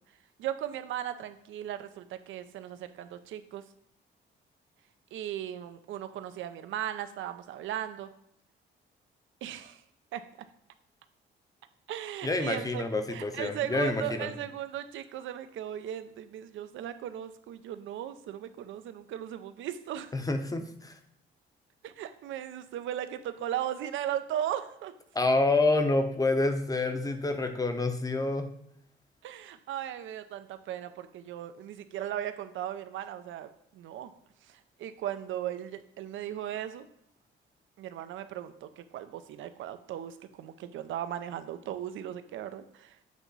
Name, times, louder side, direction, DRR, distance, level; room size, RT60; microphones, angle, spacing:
voice 1, 0.4-3.6 5.1-8.1 9.4-9.8 10.1-10.3 11.9-12.8 13.1-20.1 21.8-24.9 29.2-34.1 34.5-36.9 37.8-43.0, right 11 dB, 75° right, 11 dB, 0.5 m, -37 dB
voice 2, 12.2-14.3 20.1-20.9 25.1-28.5, left 2 dB, 20° left, 7 dB, 0.7 m, -28 dB
8.1 x 2.9 x 4.0 m, 0.76 s
cardioid pair, 90°, 20 cm